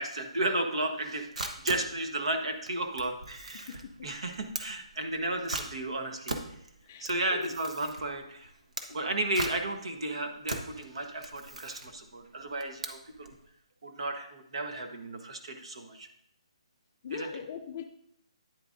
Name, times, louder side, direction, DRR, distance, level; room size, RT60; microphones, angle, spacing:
voice 1, 0.0-6.4 7.0-8.5 8.9-13.3 13.8-16.1 17.1-17.3, right 2 dB, 55° right, 6 dB, 1.2 m, -34 dB
Camera, 1.0-13.4, right 2 dB, 75° right, 1.3 m, -40 dB
voice 2, 6.9-7.5 17.0-17.9, left 7 dB, 20° left, 5 dB, 0.4 m, -40 dB
9.4 x 8.7 x 2.6 m, 0.72 s
hypercardioid pair, 175°, 4 cm